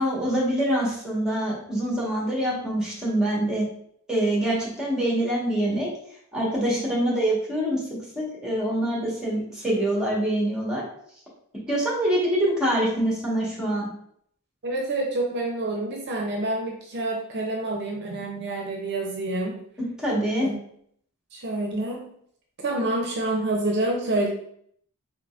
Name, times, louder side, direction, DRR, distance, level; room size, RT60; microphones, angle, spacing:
voice 1, 0.0-3.7 4.1-5.9 6.3-7.8 8.1-10.8 11.7-13.9 19.8-20.5, right 1 dB, 5° right, -4 dB, 1.3 m, -25 dB
voice 2, 14.6-19.6 20.4-20.6 21.3-22.1 22.6-24.3, right 2 dB, 50° right, 0 dB, 0.6 m, -27 dB
4.0 x 3.7 x 2.4 m, 0.66 s
head